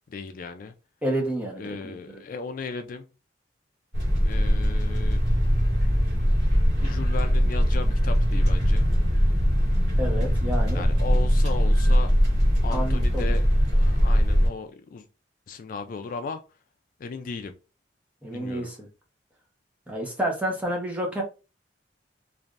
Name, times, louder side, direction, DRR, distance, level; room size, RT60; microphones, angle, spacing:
voice 1, 0.1-0.7 1.6-3.1 4.2-5.2 6.8-8.9 10.7-12.1 12.6-13.5 13.7-15.1 15.5-16.4 17.0-17.5 18.3-18.7, left 4 dB, 50° left, 0.3 m, -36 dB
voice 2, 1.0-2.2 10.0-10.8 12.7-13.4 18.2-18.9 19.9-21.2, right 1 dB, 10° right, 0.9 m, -30 dB
sound 1, 3.9-14.5, equal, 70° right, 1.4 m, -21 dB
3.2 x 2.5 x 2.5 m
head